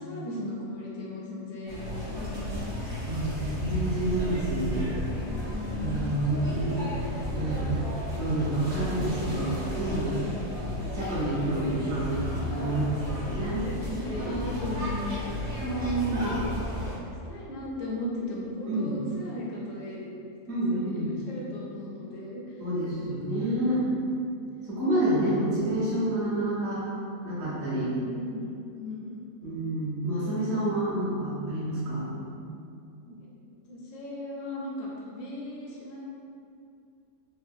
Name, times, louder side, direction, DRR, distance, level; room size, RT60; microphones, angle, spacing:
voice 1, 0.0-3.0 5.3-6.0 10.5-10.9 13.3-16.5 17.2-20.1 20.7-22.6 23.0-23.4 23.8-24.2 27.9-29.6 33.0-33.3 33.7-36.0, left 1 dB, 65° left, -4 dB, 0.8 m, -37 dB
sound 1, 1.7-17.0, left 1 dB, 70° right, 1.4 m, -33 dB
voice 2, 3.0-4.9 5.8-6.9 7.3-7.7 8.2-9.5 9.7-10.1 10.9-13.6 15.6-16.4 18.7-19.0 20.5-21.1 22.6-23.8 24.7-26.8 27.2-27.9 29.4-32.1, right 1 dB, 50° right, -12 dB, 1.3 m, -28 dB
3.5 x 2.1 x 2.5 m, 2.5 s
omnidirectional pair, 1.6 m